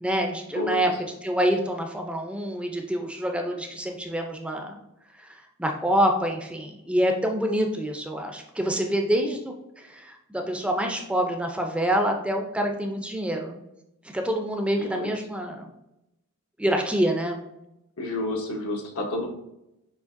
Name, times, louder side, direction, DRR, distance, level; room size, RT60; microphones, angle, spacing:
voice 1, 0.0-0.9 1.2-4.7 5.2-13.6 14.1-15.7 16.6-17.4, equal, 5° right, 3 dB, 0.4 m, -26 dB
voice 2, 0.5-1.0 14.8-15.1 18.0-19.3, left 2 dB, 80° left, 1 dB, 0.9 m, -30 dB
6.3 x 2.8 x 2.5 m, 0.87 s
head